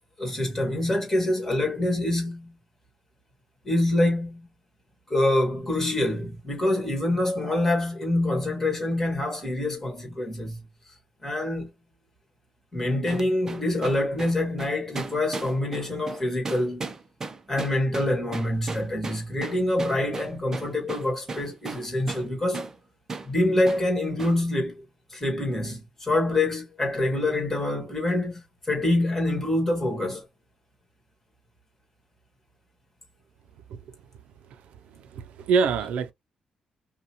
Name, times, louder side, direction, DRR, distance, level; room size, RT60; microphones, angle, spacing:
voice 1, 0.2-2.5 3.6-4.5 5.1-10.6 11.2-11.7 12.7-16.9 17.5-22.7 23.2-24.8 25.1-28.4 28.7-30.2, left 1 dB, 15° left, 1.9 m, -26 dB
sound 1, 13.1-22.3 22.5-22.8 23.1-23.3 23.7-23.9 24.2-24.4, right 4 dB, 25° right, 0.6 m, -36 dB
voice 2, 34.4-36.1, right 5 dB, 85° right, 0.5 m, -27 dB
5.4 x 2.3 x 2.9 m
wide cardioid pair, 165°, 2 cm